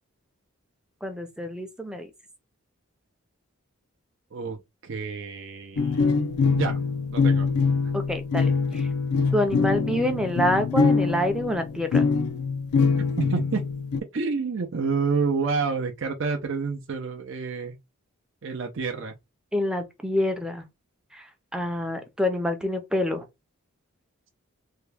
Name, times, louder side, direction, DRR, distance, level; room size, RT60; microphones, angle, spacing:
voice 1, 1.0-2.1 7.9-8.9 9.3-12.0 19.5-20.6 21.1-21.3 21.5-23.3, left 1 dB, 5° right, 0.5 m, -27 dB
voice 2, 4.8-6.1 6.5-6.8 7.1-7.5 13.0-13.6 14.1-17.8 18.4-19.1, right 4 dB, 55° right, 0.5 m, -28 dB
sound 1, 5.8-14.0, left 4 dB, 85° left, 0.4 m, -24 dB
3.5 x 2.2 x 3.3 m
head